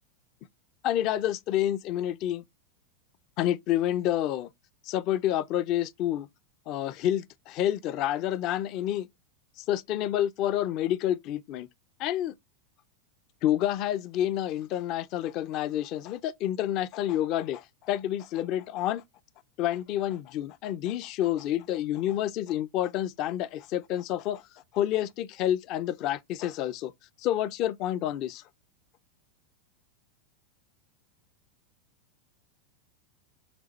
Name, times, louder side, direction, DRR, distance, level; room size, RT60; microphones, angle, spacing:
voice 1, 0.8-2.4 3.4-4.5 4.8-6.3 6.7-9.1 9.6-11.7 12.0-12.3 13.4-19.0 19.6-24.4 24.7-26.9 27.2-28.4, left 12 dB, 50° left, 0.4 m, -29 dB
6.1 x 2.4 x 3.0 m
hypercardioid pair, 95°, 0 cm